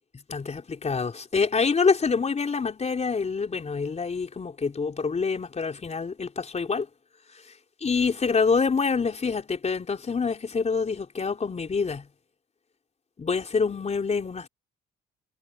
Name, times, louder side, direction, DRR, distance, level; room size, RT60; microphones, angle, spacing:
voice 1, 0.3-6.9 7.3-7.5 7.8-12.1 13.2-14.5, left 5 dB, 35° left, 4.4 m, -26 dB
cardioid pair, 90°, 20 cm